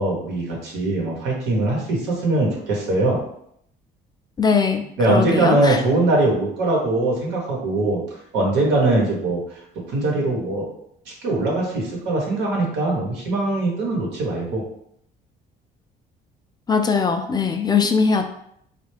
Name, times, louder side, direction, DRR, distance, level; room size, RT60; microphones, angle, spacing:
voice 1, 0.0-3.2 5.0-8.0 8.3-9.4 9.9-10.7 11.2-14.6, right 2 dB, 85° right, -2 dB, 1.2 m, -21 dB
voice 2, 4.4-5.8 16.7-18.2, left 5 dB, 25° left, 5 dB, 0.3 m, -20 dB
3.3 x 2.3 x 3.3 m, 0.71 s
cardioid pair, 110°, 17 cm